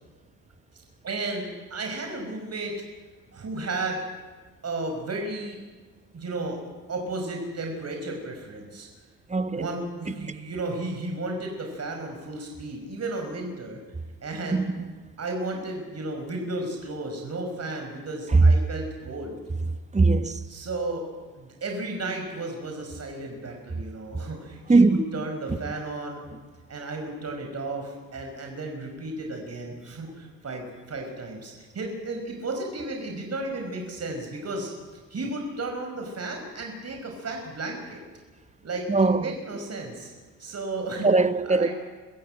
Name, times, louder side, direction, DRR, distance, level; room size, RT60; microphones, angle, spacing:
voice 1, 1.0-2.7 3.3-4.0 4.6-5.6 6.1-6.6 6.9-8.9 9.6-13.8 14.2-14.7 15.2-19.4 20.5-21.0 21.4-26.3 26.7-34.7 35.1-38.0 38.6-38.9 39.2-40.1 40.4-41.1 41.5-41.7, right 2 dB, 40° right, 5.5 m, -33 dB
voice 2, 9.3-9.7 10.1-10.3 14.5-14.7 18.3-18.5 19.9-20.4 24.7-25.2 38.9-39.3 41.0-41.7, right 3 dB, 15° right, 1.2 m, -20 dB
24.5 x 14.5 x 8.9 m
hypercardioid pair, 60°, 40 cm